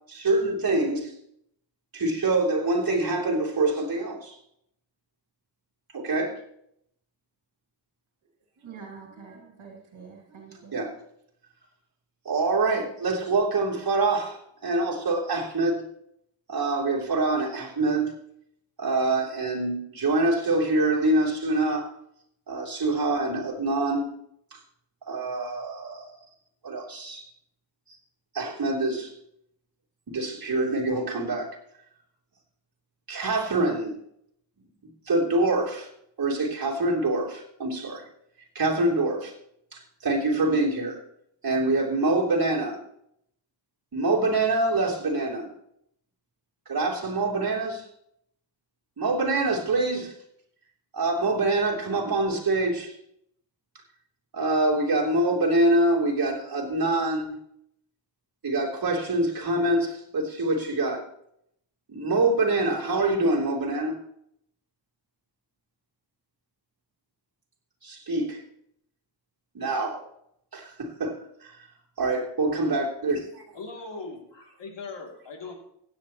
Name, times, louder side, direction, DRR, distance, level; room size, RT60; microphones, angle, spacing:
voice 1, 0.1-1.1 1.9-4.4 5.9-6.4 10.7-10.9 12.3-15.8 16.5-18.1 18.8-21.9 22.5-24.1 24.5-24.6 25.1-26.1 26.6-27.2 28.3-29.1 30.1-31.5 33.1-33.9 35.1-35.9 36.2-38.0 38.6-39.3 39.7-41.0 41.4-42.8 43.9-45.5 46.7-47.8 49.0-50.1 50.9-52.9 54.3-57.3 58.4-61.1 61.9-64.0 67.8-68.4 69.6-70.0 70.5-71.5 72.0-73.4, right 2 dB, 50° right, -3 dB, 3.4 m, -25 dB
voice 2, 8.6-10.8, right 5 dB, 85° right, 0 dB, 2.7 m, -45 dB
voice 3, 73.5-75.5, left 3 dB, 65° left, 1 dB, 3.0 m, -39 dB
16.0 x 10.0 x 3.1 m, 0.71 s
wide cardioid pair, 95°, 46 cm